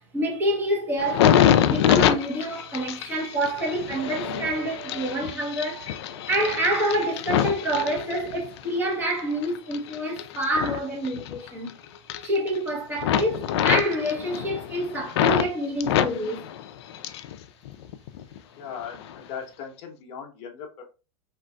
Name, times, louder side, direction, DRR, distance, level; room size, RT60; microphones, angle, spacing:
voice 1, 0.0-6.0 6.3-11.7 12.2-16.5, right 1 dB, 10° right, 1.0 m, -27 dB
sound 1, 1.0-8.6 9.1-11.7 12.0-12.7 13.0-15.5 15.8-17.4 17.7-18.4 18.9-19.1, left 10 dB, 60° left, 0.4 m, -25 dB
sound 2, 4.0-7.0, right 12 dB, 50° right, 0.4 m, -43 dB
voice 2, 18.5-20.8, left 7 dB, 40° left, 0.9 m, -38 dB
3.7 x 2.5 x 2.3 m
hypercardioid pair, 135°, 16 cm